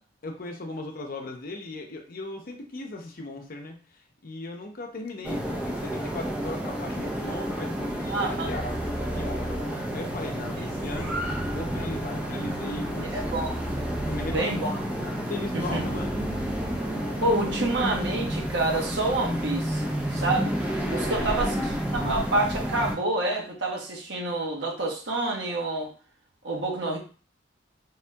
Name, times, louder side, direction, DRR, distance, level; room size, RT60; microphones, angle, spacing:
voice 1, 0.2-3.8 4.2-9.6 9.9-13.2 14.0-14.7 15.3-16.2 21.0-21.4, left 2 dB, 50° left, 3 dB, 0.6 m, -37 dB
sound 1, 5.2-23.0, equal, 10° right, 0.5 m, -31 dB
voice 2, 8.1-8.5 13.1-13.5 14.3-14.8 15.5-15.8 17.2-19.8 20.1-20.5 20.9-21.5 21.9-25.9 26.4-27.0, right 2 dB, 70° right, -1 dB, 0.9 m, -27 dB
sound 2, 8.4-18.0, equal, 35° right, 1.4 m, -37 dB
3.5 x 2.7 x 2.2 m, 0.38 s
head